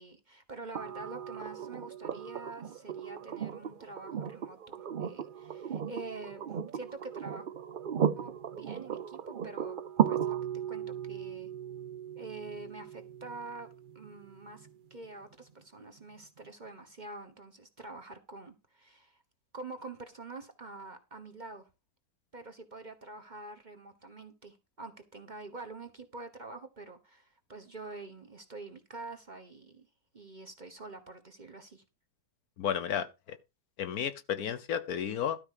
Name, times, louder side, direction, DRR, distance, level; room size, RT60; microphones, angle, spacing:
voice 1, 0.0-7.5 8.1-9.8 10.1-10.4 10.7-11.5 12.2-13.7 13.9-19.2 19.5-21.7 22.3-29.9 30.1-31.8, right 3 dB, 30° right, 1.2 m, -46 dB
sound 1, 0.7-14.7 16.4-16.5, right 8 dB, 75° right, 0.4 m, -36 dB
voice 2, 32.6-33.4 33.8-35.4, left 9 dB, 65° left, 1.2 m, -33 dB
12.5 x 4.8 x 6.6 m
omnidirectional pair, 1.8 m